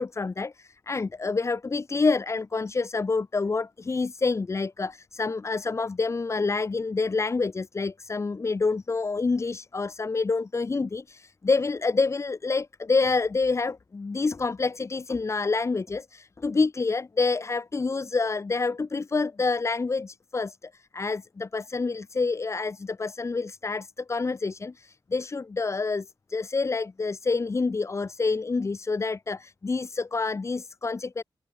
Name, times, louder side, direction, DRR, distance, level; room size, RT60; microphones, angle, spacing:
voice 1, 0.0-31.2, left 4 dB, 30° left, 0.4 m, -27 dB
cardioid pair, 55°, 9 cm